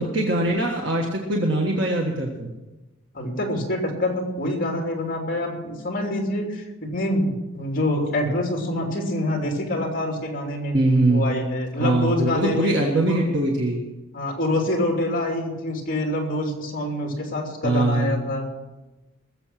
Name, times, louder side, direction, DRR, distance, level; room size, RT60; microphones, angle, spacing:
voice 1, 0.0-2.5 10.7-11.3 11.8-13.8 17.6-18.2, right 2 dB, 60° right, 0 dB, 1.6 m, -22 dB
voice 2, 3.1-10.7 11.1-12.7 13.1-13.2 14.1-18.4, left 1 dB, 40° left, 1 dB, 3.0 m, -26 dB
20.0 x 7.6 x 5.9 m, 1.1 s
head